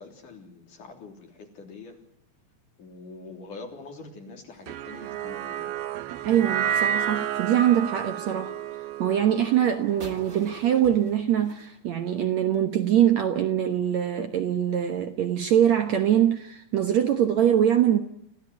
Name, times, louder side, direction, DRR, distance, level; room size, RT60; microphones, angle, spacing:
voice 1, 0.0-2.0 2.8-5.9, left 3 dB, 60° left, 4.8 m, -44 dB
sound 1, 4.7-11.0, right 9 dB, 85° right, 3.0 m, -31 dB
voice 2, 6.2-8.5 9.0-18.0, right 10 dB, 60° right, 2.1 m, -23 dB
sound 2, 10.0-12.7, right 3 dB, 25° right, 2.6 m, -47 dB
26.5 x 16.0 x 9.5 m
omnidirectional pair, 4.3 m